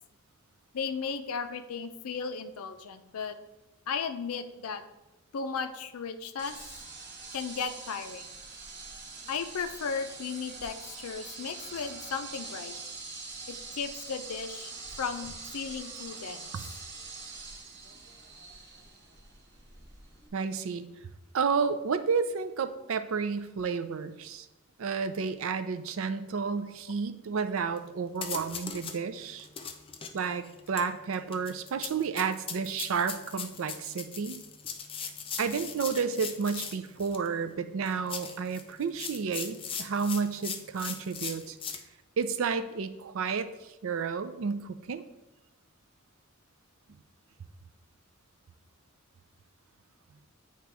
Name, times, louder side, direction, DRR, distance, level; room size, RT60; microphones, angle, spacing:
voice 1, 0.7-3.4 3.9-4.8 5.3-6.6 7.3-8.3 9.3-12.7 13.5-16.5, left 5 dB, 80° left, 10 dB, 0.5 m, -35 dB
sound 1, 6.4-20.3, right 4 dB, 50° right, 1.1 m, -44 dB
voice 2, 20.3-20.8 21.3-24.5 24.8-29.5 30.1-34.4 35.4-41.6 42.2-43.5 43.8-45.0, right 5 dB, 65° right, 11 dB, 0.4 m, -31 dB
sound 2, 27.8-27.9 28.2-29.0 29.4-37.3 37.9-41.8, left 6 dB, 25° left, 0.4 m, -39 dB
8.2 x 3.0 x 4.6 m, 0.97 s
head